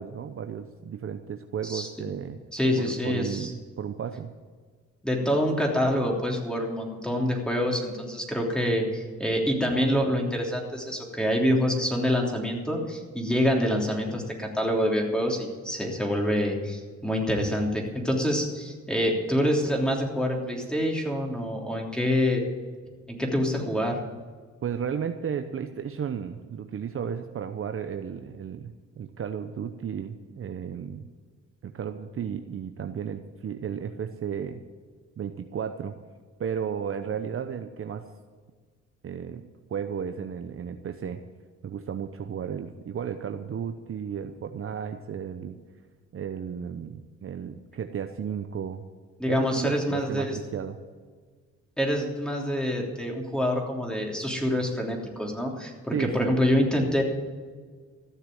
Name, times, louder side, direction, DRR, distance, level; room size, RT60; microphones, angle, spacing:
voice 1, 0.0-2.4 2.8-4.3 24.6-31.1 31.6-34.6 35.2-35.9 36.4-38.0 39.0-41.2 41.6-45.6 46.1-48.8 49.3-50.8 55.9-56.4, right 7 dB, 45° right, 7 dB, 0.8 m, -34 dB
voice 2, 2.5-3.5 5.0-22.4 23.1-24.0 49.2-50.4 51.8-57.0, equal, 5° left, 0 dB, 3.3 m, -26 dB
15.0 x 6.7 x 9.2 m, 1.5 s
cardioid pair, 90°, 30 cm